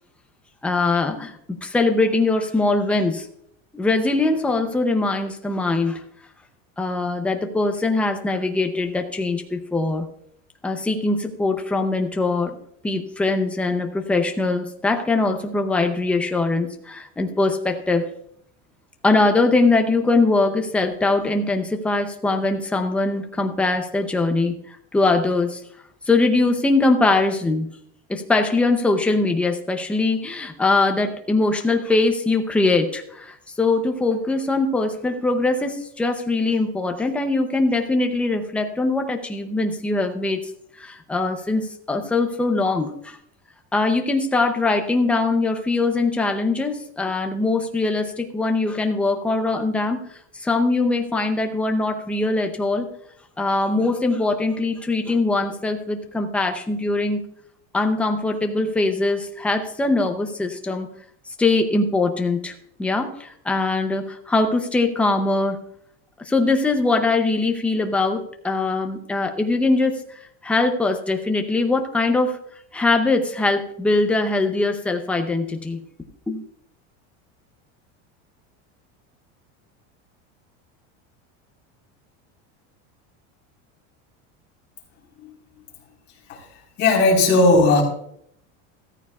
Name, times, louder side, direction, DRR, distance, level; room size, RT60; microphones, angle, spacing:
voice 1, 0.6-3.3 3.7-6.0 6.8-10.1 10.6-12.5 12.8-18.1 19.0-25.6 26.1-27.7 28.1-40.4 40.8-43.2 43.7-50.0 50.3-52.9 53.4-57.2 57.7-60.9 61.4-62.5 62.8-65.6 66.2-72.4 72.7-75.8 76.3-76.4, left 3 dB, 5° left, 5 dB, 0.5 m, -22 dB
voice 2, 86.8-87.8, left 2 dB, 30° left, -2 dB, 3.8 m, -16 dB
14.5 x 13.5 x 2.3 m, 0.70 s
cardioid pair, 175°, 35 cm